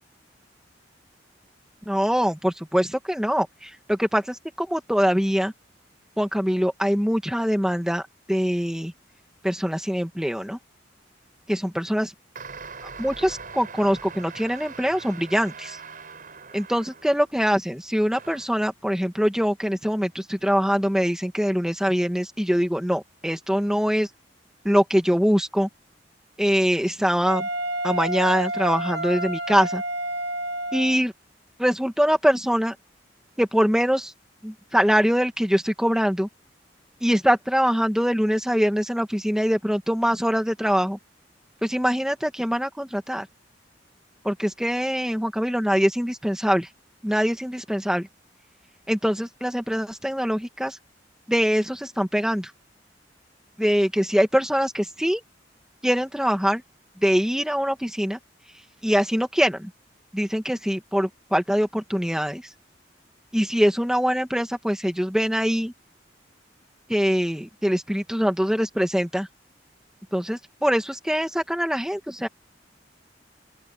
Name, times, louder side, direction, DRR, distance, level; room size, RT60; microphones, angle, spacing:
voice 1, 1.9-5.5 6.2-8.0 8.3-8.9 9.4-10.6 11.5-12.1 13.0-15.8 16.5-24.1 24.6-25.7 26.4-27.5 27.8-29.8 30.7-31.1 31.6-32.8 33.4-34.1 34.4-36.3 37.0-41.0 41.6-43.3 44.2-46.7 47.0-48.1 48.9-50.8 51.3-52.5 53.6-55.2 55.8-56.6 57.0-58.2 58.8-59.7 60.1-62.4 63.3-65.7 66.9-69.3 70.1-72.3, equal, 5° right, 2.2 m, -23 dB
sound 1, 12.3-17.4 18.1-18.6, right 5 dB, 50° right, 7.1 m, -42 dB
Wind instrument woodwind instrument, 27.3-31.0, right 1 dB, 65° right, 3.6 m, -29 dB
open air
head